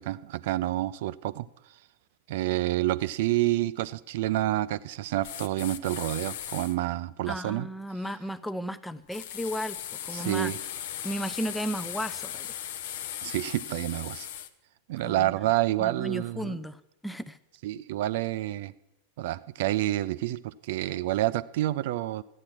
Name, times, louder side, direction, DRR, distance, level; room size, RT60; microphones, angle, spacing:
voice 1, 0.0-1.5 2.3-7.7 10.1-10.6 13.2-14.3 14.9-16.6 17.6-18.7 19.2-22.2, right 15 dB, 50° right, 17 dB, 0.4 m, -28 dB
sound 1, 5.2-6.8 9.1-14.5, left 11 dB, 55° left, 0.6 m, -38 dB
voice 2, 7.3-9.8 10.0-10.5 11.0-12.6 15.0-15.3 15.8-17.4, equal, 5° left, 15 dB, 0.5 m, -34 dB
13.0 x 8.7 x 6.0 m, 0.88 s
figure-of-eight pair, 90°, 0 cm